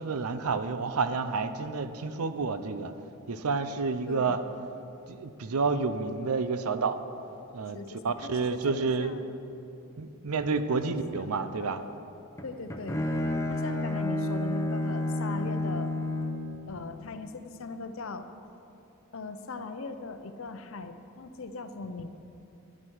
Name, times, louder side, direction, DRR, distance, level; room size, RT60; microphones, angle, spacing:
voice 1, 0.0-2.9 3.3-4.4 5.1-7.0 7.5-9.2 10.0-11.8, right 4 dB, 85° right, 11 dB, 0.6 m, -29 dB
voice 2, 4.1-4.4 7.7-9.3 10.7-11.3 11.6-11.9 12.4-13.0 13.5-15.9 16.6-18.3 19.1-22.1, left 3 dB, 60° left, 9 dB, 0.6 m, -39 dB
Bowed string instrument, 12.4-16.5, left 1 dB, 15° left, 0.7 m, -30 dB
11.0 x 9.7 x 4.6 m, 2.7 s
head